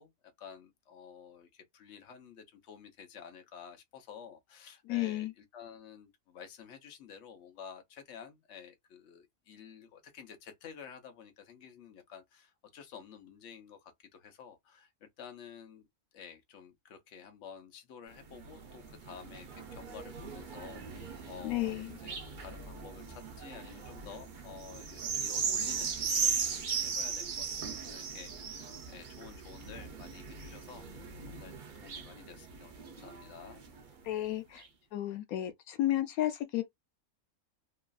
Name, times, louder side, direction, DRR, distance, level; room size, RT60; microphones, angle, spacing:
voice 1, 0.0-15.8 16.1-31.5 31.8-33.6, left 7 dB, 60° left, 1.0 m, -51 dB
voice 2, 4.9-5.3 21.4-21.9 34.0-34.6 34.9-36.6, left 14 dB, 90° left, 1.1 m, -32 dB
sound 1, 18.1-33.9 34.6-34.7, right 6 dB, 50° right, 0.6 m, -38 dB
3.0 x 2.4 x 2.3 m
omnidirectional pair, 1.5 m